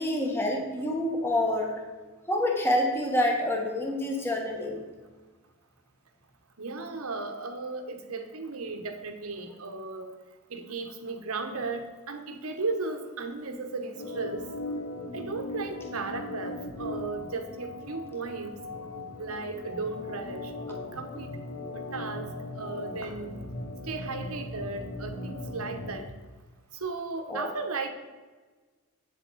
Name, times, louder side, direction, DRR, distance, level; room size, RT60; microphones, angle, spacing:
voice 1, 0.0-1.8 2.3-4.8 27.3-27.5, left 1 dB, 10° left, 1 dB, 1.4 m, -27 dB
voice 2, 6.6-10.1 10.5-14.4 15.1-18.6 19.2-21.3 21.7-23.5 23.8-26.1 26.7-27.9, right 3 dB, 75° right, 7 dB, 1.1 m, -36 dB
Organ, 13.9-26.1, left 2 dB, 85° left, 1.3 m, -39 dB
8.4 x 7.6 x 4.1 m, 1.3 s
head